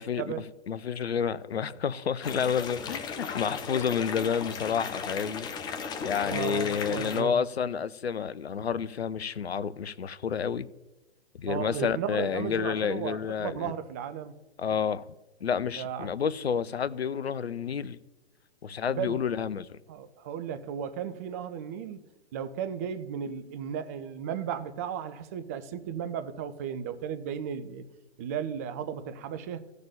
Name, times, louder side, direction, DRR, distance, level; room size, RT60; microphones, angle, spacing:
voice 1, 0.0-5.5 6.0-10.7 11.4-13.7 14.6-15.1 15.4-18.0 18.6-19.8, left 7 dB, 70° left, 0.7 m, -30 dB
sound 1, 2.2-7.2, left 6 dB, 10° left, 0.9 m, -36 dB
voice 2, 6.3-7.4 11.5-14.3 15.8-16.1 18.9-19.2 19.9-22.0 22.3-27.8 28.2-29.6, right 8 dB, 15° right, 0.4 m, -35 dB
14.5 x 6.7 x 8.7 m
figure-of-eight pair, 125°, 33 cm